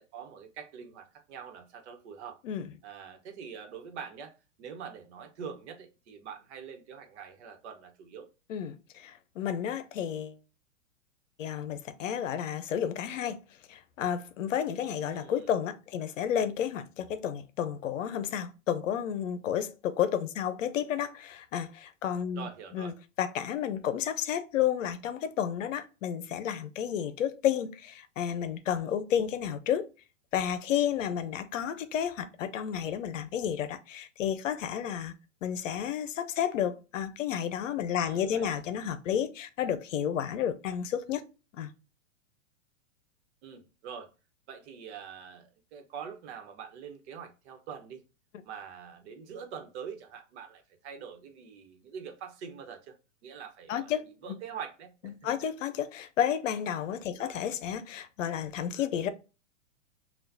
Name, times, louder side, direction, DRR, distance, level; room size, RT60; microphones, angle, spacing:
voice 1, 0.0-2.4 2.8-8.3 15.0-15.6 22.3-23.0 38.0-38.6 43.4-44.1 44.5-48.0 48.4-53.0 53.2-55.3 57.2-57.4, right 7 dB, 55° right, 1.1 m, -44 dB
voice 2, 8.5-10.4 11.4-13.4 13.7-29.9 30.3-35.1 35.4-41.2 41.5-41.7 53.7-54.0 55.2-59.1, left 9 dB, 70° left, 0.7 m, -31 dB
5.7 x 2.4 x 2.7 m
hypercardioid pair, 120°, 39 cm